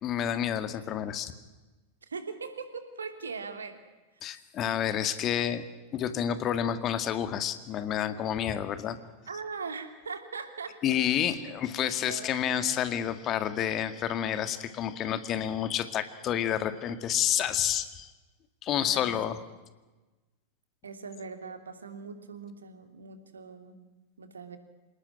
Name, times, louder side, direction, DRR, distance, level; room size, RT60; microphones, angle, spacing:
voice 1, 0.0-1.3 4.2-5.7 5.9-9.0 10.8-18.1 18.6-19.4, left 10 dB, 30° left, 10 dB, 2.0 m, -29 dB
voice 2, 2.0-3.8 9.3-12.3 18.8-19.1 20.8-23.8 24.2-24.6, right 5 dB, 70° right, 7 dB, 2.9 m, -41 dB
27.5 x 19.0 x 10.0 m, 1.2 s
figure-of-eight pair, 90°, 0 cm